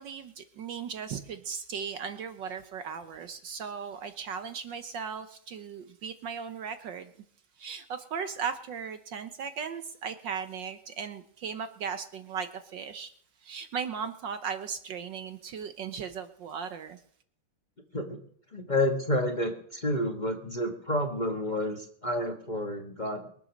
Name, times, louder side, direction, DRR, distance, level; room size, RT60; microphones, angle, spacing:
voice 1, 0.0-7.1 7.6-13.1 13.4-17.0, right 6 dB, 65° right, 1.4 m, -37 dB
voice 2, 18.5-23.3, left 1 dB, 25° left, 1.2 m, -30 dB
22.5 x 7.9 x 6.4 m
omnidirectional pair, 2.4 m